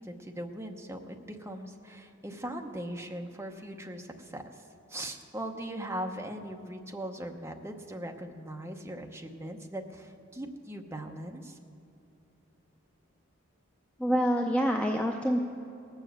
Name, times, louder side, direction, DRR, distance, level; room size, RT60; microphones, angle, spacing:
voice 1, 0.0-4.6 4.9-11.6, right 1 dB, 10° right, 3 dB, 0.8 m, -40 dB
voice 2, 14.0-15.5, equal, 5° left, 2 dB, 0.5 m, -26 dB
18.5 x 7.1 x 7.7 m, 2.7 s
head